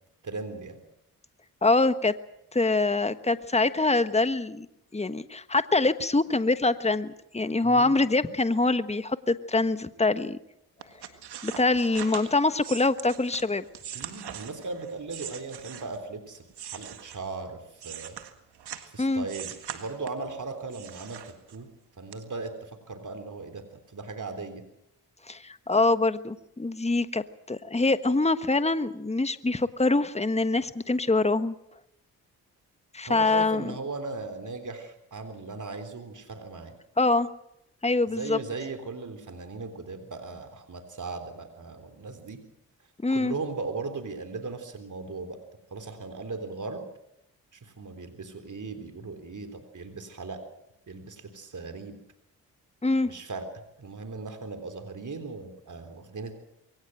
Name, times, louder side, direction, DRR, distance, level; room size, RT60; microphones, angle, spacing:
voice 1, 0.2-0.8 7.6-8.0 13.9-18.2 18.9-21.7 22.0-23.6 23.9-24.6 33.1-36.8 38.1-42.4 43.1-45.4 45.7-46.8 47.5-50.4 50.9-52.0 53.1-53.5 53.8-56.4, right 3 dB, 50° right, 7 dB, 3.7 m, -38 dB
voice 2, 1.6-2.1 2.5-4.7 4.9-10.4 11.4-13.6 19.0-19.2 25.3-31.6 32.9-33.7 37.0-37.3 37.8-38.4 43.0-43.3 52.8-53.1, left 3 dB, 15° left, 12 dB, 1.3 m, -24 dB
sound 1, 10.8-16.1 16.5-18.9 19.3-20.3 20.7-21.8 22.1-22.2, right 9 dB, 80° right, 1.9 m, -41 dB
23.0 x 18.0 x 7.8 m, 0.81 s
supercardioid pair, 45°, 39 cm